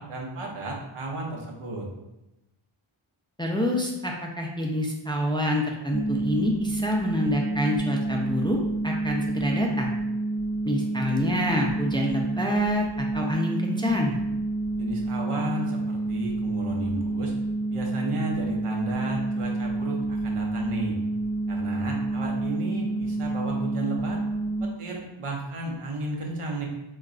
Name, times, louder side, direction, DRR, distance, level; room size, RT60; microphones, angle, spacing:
voice 1, 0.0-1.9 14.8-17.3 17.7-21.0 21.5-24.2 24.6-26.7, right 2 dB, 85° right, -1 dB, 0.7 m, -33 dB
voice 2, 3.4-8.6 8.8-9.9 10.6-14.2, left 1 dB, 10° left, 0 dB, 0.3 m, -27 dB
sound 1, 5.9-24.6, right 2 dB, 30° right, 0.7 m, -29 dB
3.7 x 2.3 x 2.4 m, 0.94 s
wide cardioid pair, 40°, 50 cm